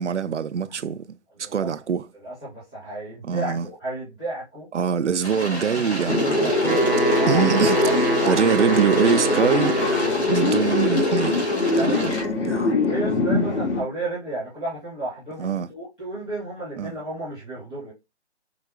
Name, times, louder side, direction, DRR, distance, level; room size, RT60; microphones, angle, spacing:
voice 1, 0.0-2.1 3.2-3.7 4.7-6.8 7.3-11.5 11.7-12.7 15.4-15.7 16.8-16.9, right 7 dB, 85° right, 0.5 m, -24 dB
voice 2, 2.2-4.7 5.7-6.6 7.1-8.4 11.7-12.2 12.9-17.9, right 1 dB, 5° left, 0.6 m, -33 dB
sound 1, 5.2-12.2, equal, 70° left, 1.9 m, -31 dB
sound 2, 6.1-13.8, left 2 dB, 90° left, 1.4 m, -22 dB
Wind instrument woodwind instrument, 6.5-10.3, right 5 dB, 50° right, 0.6 m, -27 dB
4.8 x 2.1 x 2.3 m
figure-of-eight pair, 150°, 34 cm